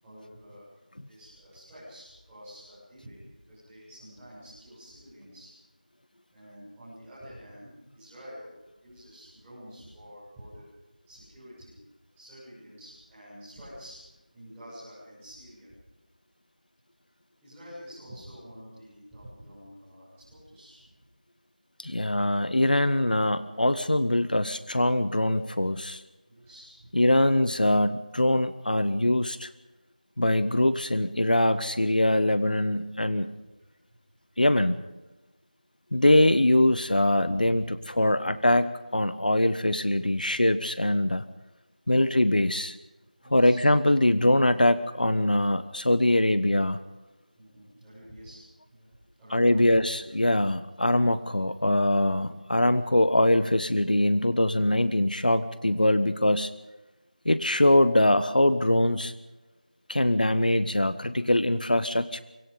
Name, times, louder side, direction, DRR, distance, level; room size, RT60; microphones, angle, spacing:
voice 1, 0.0-3.2 3.5-5.5 6.3-8.5 8.8-10.7 11.1-11.8 12.2-14.0 14.3-15.7 17.4-21.0 26.3-26.9 37.2-38.3 41.9-42.2 43.2-43.6 47.4-48.4 48.7-49.7, equal, 5° right, -14 dB, 7.8 m, -48 dB
voice 2, 21.8-26.0 26.9-29.5 30.2-33.3 34.4-34.8 35.9-41.2 41.9-42.8 43.3-46.8 49.3-56.5 57.2-59.1 59.9-62.2, left 1 dB, 70° left, 13 dB, 1.3 m, -23 dB
25.0 x 22.5 x 5.4 m, 1.1 s
figure-of-eight pair, 175°, 5 cm